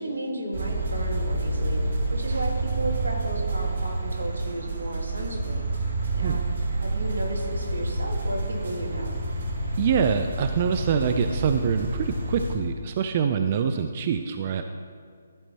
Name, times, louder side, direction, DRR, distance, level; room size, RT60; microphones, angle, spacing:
voice 1, 0.0-5.6 6.1-6.4 6.8-9.1, right 1 dB, 90° right, 1 dB, 1.8 m, -33 dB
sound 1, 0.5-12.6, right 2 dB, 70° right, 1.6 m, -28 dB
voice 2, 9.8-14.6, right 7 dB, 40° right, 7 dB, 0.4 m, -25 dB
12.0 x 4.4 x 4.4 m, 2.1 s
hypercardioid pair, 150°, 0 cm